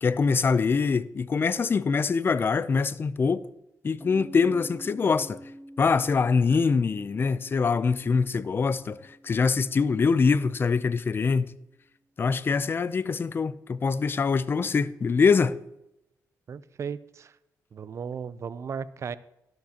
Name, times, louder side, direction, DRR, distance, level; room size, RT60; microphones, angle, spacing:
voice 1, 0.0-3.4 3.8-5.4 5.8-11.5 12.2-15.5, left 5 dB, 35° left, 0.5 m, -24 dB
Piano, 4.0-11.2, equal, 15° left, 4.1 m, -48 dB
voice 2, 16.5-17.3 17.7-19.2, right 6 dB, 50° right, 0.5 m, -35 dB
13.0 x 12.0 x 2.9 m
cardioid pair, 100°, 6 cm